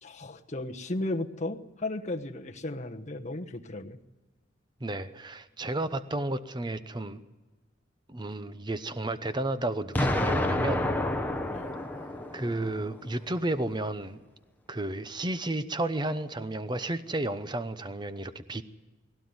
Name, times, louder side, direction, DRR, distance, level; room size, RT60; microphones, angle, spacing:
voice 1, 0.0-4.0 11.5-11.7, left 2 dB, 35° left, 4 dB, 1.2 m, -35 dB
voice 2, 4.8-7.2 8.1-10.8 12.3-14.2 14.7-18.6, right 2 dB, 20° right, 11 dB, 0.8 m, -32 dB
Explosion, 10.0-12.9, left 1 dB, 10° left, 1.2 m, -29 dB
19.5 x 17.0 x 9.6 m, 1.2 s
head